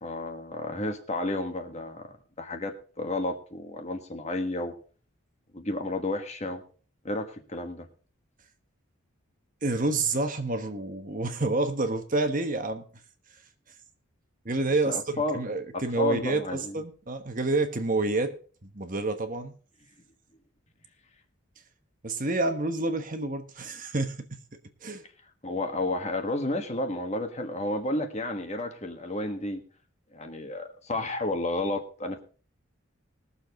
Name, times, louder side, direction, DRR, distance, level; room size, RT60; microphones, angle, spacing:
voice 1, 0.0-4.7 5.5-6.6 7.0-7.9 14.8-15.4 15.7-16.8 25.4-29.6 30.1-32.2, left 2 dB, 30° left, 6 dB, 1.4 m, -31 dB
voice 2, 9.6-12.8 14.4-18.3 18.6-19.5 22.0-24.4 24.8-25.0, right 2 dB, 40° right, 7 dB, 1.2 m, -28 dB
20.5 x 7.0 x 3.9 m, 0.39 s
head